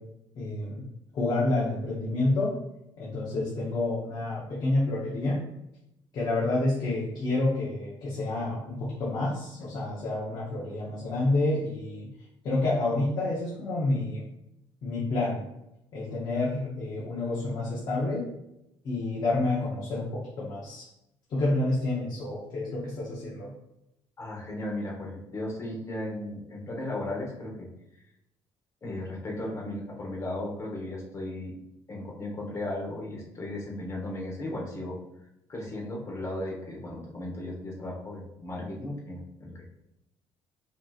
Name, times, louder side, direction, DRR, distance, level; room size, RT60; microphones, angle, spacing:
voice 1, 0.4-0.9 1.1-2.5 3.0-5.4 6.1-12.1 12.4-14.2 14.8-15.4 15.9-18.2 18.8-20.8 21.3-23.5, left 2 dB, 50° left, -5 dB, 0.9 m, -29 dB
voice 2, 24.2-27.7 28.8-31.5 31.9-35.0 35.5-39.6, left 1 dB, 30° left, -2 dB, 1.2 m, -36 dB
5.2 x 2.9 x 2.4 m, 0.86 s
cardioid pair, 140°, 9 cm